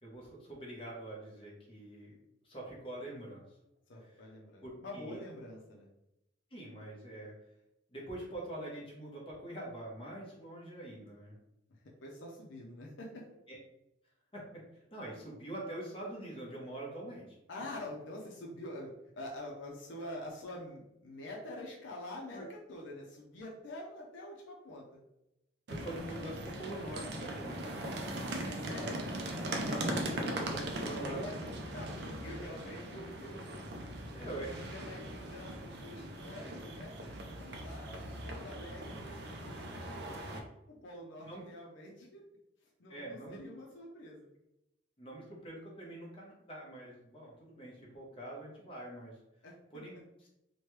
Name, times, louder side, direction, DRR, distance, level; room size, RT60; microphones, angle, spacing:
voice 1, 0.0-2.2 2.4-3.4 4.1-4.2 4.6-5.2 6.5-7.3 7.9-11.4 13.5-13.6 14.3-14.4 14.9-17.3 22.3-22.4 25.7-27.8 29.6-31.2 34.1-34.6 41.2-41.4 42.9-43.4 45.0-49.2 49.7-49.9, right 1 dB, 30° left, -4 dB, 0.8 m, -44 dB
voice 2, 3.9-5.9 12.0-13.2 17.5-25.0 28.4-29.0 30.8-31.4 31.7-33.5 34.5-42.2 42.8-44.3 49.4-49.8, left 1 dB, 75° left, -2 dB, 0.6 m, -46 dB
sound 1, 25.7-40.4, right 1 dB, 60° right, 0.4 m, -40 dB
3.1 x 2.2 x 3.1 m, 0.86 s
head